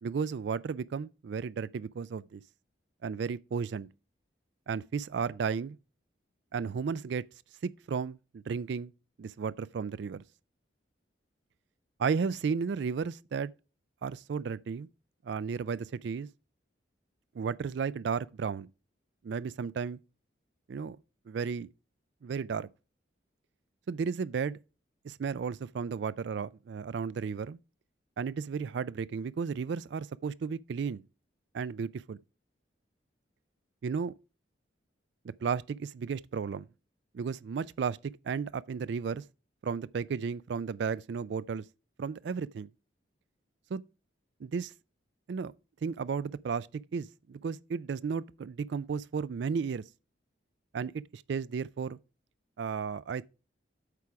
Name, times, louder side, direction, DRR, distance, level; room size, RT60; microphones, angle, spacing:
voice 1, 0.0-2.4 3.0-3.9 4.7-5.8 6.5-7.2 7.9-8.9 9.2-10.2 12.0-13.5 14.0-14.9 15.2-16.3 17.4-18.7 19.2-20.0 20.7-21.0 21.3-21.7 22.2-22.7 23.9-24.6 25.0-27.6 28.2-31.0 31.5-32.2 33.8-34.1 35.4-36.7 37.1-38.0 38.2-39.2 39.6-41.6 42.0-42.7 43.7-43.8 44.4-44.7 45.3-45.5 45.8-46.7 46.9-49.8 50.7-52.0 52.6-53.3, right 6 dB, 65° right, 0.3 m, -33 dB
8.4 x 4.8 x 5.8 m
head